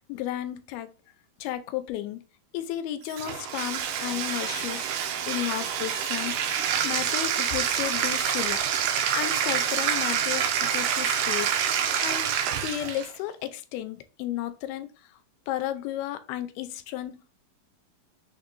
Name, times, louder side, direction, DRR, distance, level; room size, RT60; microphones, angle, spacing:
voice 1, 0.1-0.9 1.4-2.2 2.5-4.9 5.3-6.3 6.8-8.6 9.1-11.6 12.0-12.3 12.6-14.9 15.5-17.3, left 13 dB, 90° left, 2.4 m, -33 dB
Bathtub (filling or washing), 3.1-13.1, right 8 dB, 80° right, 2.0 m, -27 dB
6.4 x 2.7 x 2.5 m
omnidirectional pair, 4.2 m